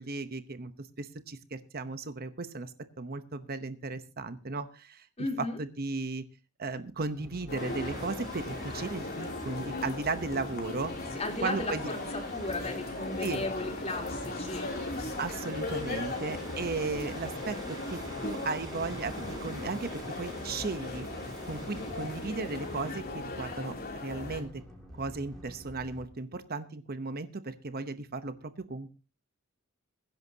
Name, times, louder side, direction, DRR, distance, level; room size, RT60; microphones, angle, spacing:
voice 1, 0.0-2.7 3.0-5.1 5.4-6.2 6.6-10.9 11.4-11.8 13.2-13.5 15.2-21.1 21.5-24.5 24.9-29.0, right 3 dB, 45° right, 11 dB, 0.9 m, -36 dB
voice 2, 5.2-5.6 11.1-14.7, left 2 dB, 30° left, 2 dB, 3.6 m, -35 dB
sound 1, 7.1-26.1, equal, ahead, 5.9 m, -47 dB
sound 2, 7.5-24.4, left 2 dB, 45° left, 3.1 m, -38 dB
sound 3, 7.6-23.0, right 2 dB, 20° right, 5.9 m, -48 dB
22.0 x 11.0 x 2.8 m, 0.32 s
head